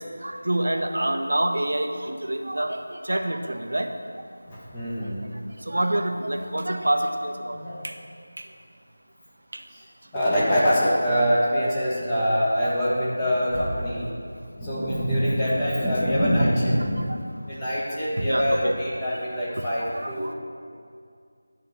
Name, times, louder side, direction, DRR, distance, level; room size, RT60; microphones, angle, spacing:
voice 1, 0.2-2.8 3.1-3.9 5.7-7.6 15.4-15.6 18.2-18.8 19.9-20.3, right 1 dB, 70° right, 5 dB, 0.9 m, -26 dB
voice 2, 4.4-5.3 7.5-7.8 9.7-9.8 10.1-14.1 14.5-17.1 17.5-20.3, equal, 20° left, -8 dB, 1.3 m, -24 dB
11.0 x 3.8 x 7.0 m, 2.3 s
figure-of-eight pair, 165°, 0 cm